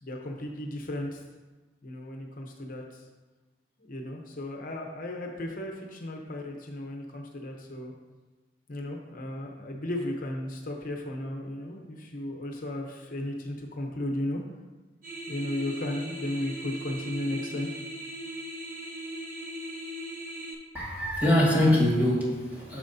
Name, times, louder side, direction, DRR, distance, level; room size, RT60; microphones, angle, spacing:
voice 1, 0.0-1.2 1.8-3.0 3.9-7.9 8.7-14.4 15.3-17.7, left 1 dB, 50° left, 1 dB, 0.8 m, -35 dB
sound 1, 15.0-20.5, equal, 50° right, 1.1 m, -39 dB
voice 2, 20.7-22.8, left 1 dB, 10° right, -5 dB, 1.8 m, -23 dB
9.1 x 6.3 x 2.7 m, 1.2 s
head